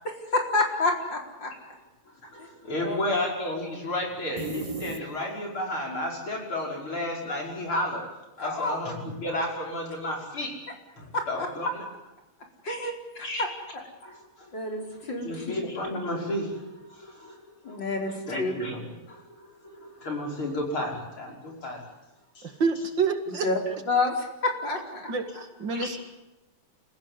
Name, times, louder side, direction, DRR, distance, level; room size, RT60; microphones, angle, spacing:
voice 1, 0.3-1.8 2.4-2.5 2.8-3.2 8.4-8.8 11.1-11.5 12.6-13.3 13.7-13.8 14.5-15.5 17.6-18.5 23.4-23.6 23.9-25.1, left 3 dB, 60° left, 2 dB, 5.1 m, -29 dB
voice 2, 2.3-8.1 8.4-10.6 11.0-11.8 13.2-13.4 14.0-14.5 15.2-17.8 18.3-18.8 19.1-21.8 22.3-22.5 25.3-25.4 25.7-26.0, left 1 dB, 80° left, 0 dB, 6.6 m, -32 dB
sound 1, 4.4-5.6, right 3 dB, 20° right, 1.1 m, -36 dB
voice 3, 22.4-23.5 25.1-26.0, right 5 dB, 60° right, 7 dB, 2.8 m, -28 dB
29.0 x 16.0 x 9.9 m, 0.99 s
omnidirectional pair, 2.3 m